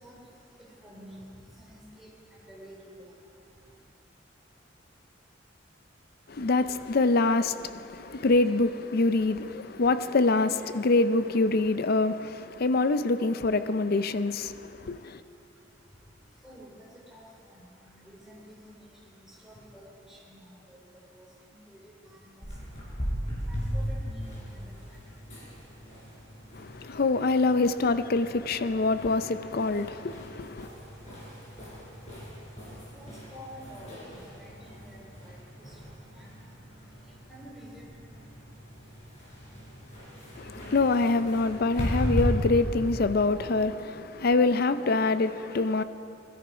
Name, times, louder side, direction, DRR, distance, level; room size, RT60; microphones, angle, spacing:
voice 1, 0.0-3.9 14.7-25.2 32.5-38.5, equal, 5° right, 3.9 m, -51 dB
voice 2, 6.3-15.2 26.5-30.7 40.4-45.8, left 3 dB, 55° left, 0.5 m, -25 dB
sound 1, 22.4-42.2, equal, 40° left, 4.9 m, -38 dB
20.5 x 13.0 x 4.9 m
head